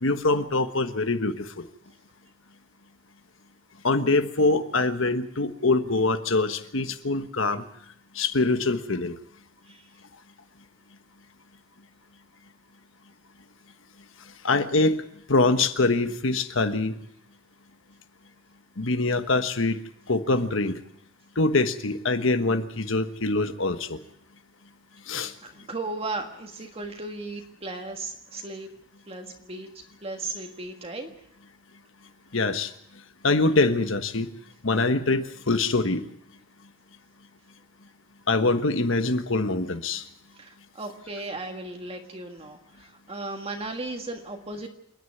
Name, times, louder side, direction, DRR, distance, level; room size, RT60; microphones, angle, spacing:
voice 1, 0.0-1.6 3.8-7.6 8.1-9.1 14.4-15.0 15.3-17.0 18.8-19.8 20.1-20.8 21.4-24.0 25.1-25.3 32.3-32.7 33.2-34.3 34.6-36.0 38.3-40.0, left 3 dB, 65° left, 9 dB, 1.3 m, -24 dB
voice 2, 25.4-28.7 29.1-29.7 30.0-31.1 40.4-44.7, right 2 dB, 30° right, 3 dB, 1.7 m, -36 dB
27.5 x 10.0 x 9.5 m, 0.76 s
head